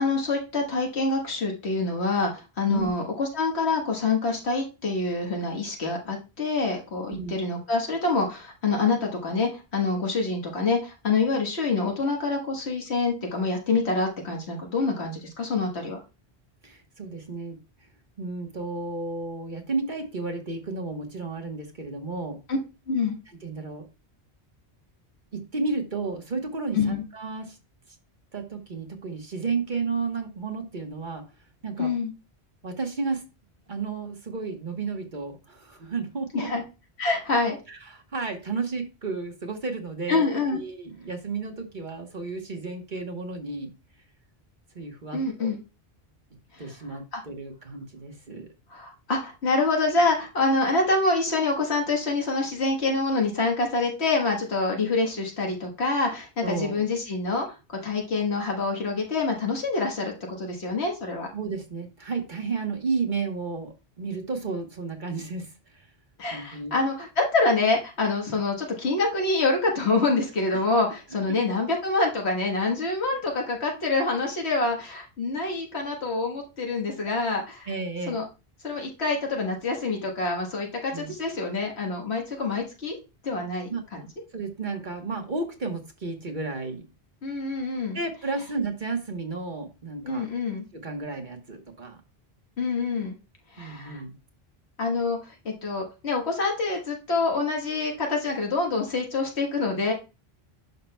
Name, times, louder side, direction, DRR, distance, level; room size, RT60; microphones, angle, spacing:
voice 1, 0.0-16.0 22.5-22.6 22.9-23.2 26.7-27.0 31.8-32.1 36.3-36.6 37.0-37.6 40.1-40.6 45.1-45.6 46.5-46.6 47.1-47.2 48.7-61.3 66.2-77.7 78.1-78.3 78.6-83.0 83.2-83.7 87.2-88.0 90.0-90.6 92.6-93.1 93.5-94.0 94.8-95.2 95.4-99.9, left 3 dB, 80° left, 1 dB, 1.7 m, -26 dB
voice 2, 16.6-17.6 18.2-22.4 23.4-23.9 25.3-27.6 28.3-31.2 31.6-31.9 32.6-33.2 33.7-36.5 37.7-40.2 40.5-43.7 44.7-45.5 46.6-48.5 56.4-56.8 61.3-65.9 66.3-66.7 70.5-70.6 71.1-71.4 77.7-78.2 80.9-81.1 83.7-83.8 84.3-86.9 87.9-90.3 90.7-92.0 93.6-94.1, right 4 dB, 50° right, 3 dB, 1.4 m, -32 dB
11.0 x 5.8 x 2.2 m, 0.30 s
omnidirectional pair, 1.1 m